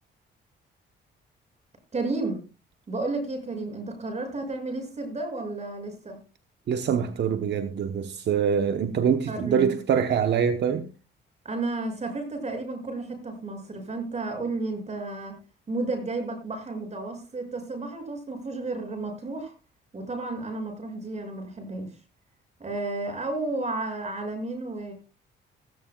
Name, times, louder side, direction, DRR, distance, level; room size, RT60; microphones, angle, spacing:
voice 1, 1.9-2.4 2.9-6.2 9.3-9.8 11.4-15.3 15.7-19.5 19.9-21.9 22.6-24.9, right 2 dB, 35° right, 6.7 m, -32 dB
voice 2, 6.7-10.9, right 7 dB, 60° right, 1.0 m, -24 dB
16.5 x 15.5 x 2.3 m
cardioid pair, 90°, 20 cm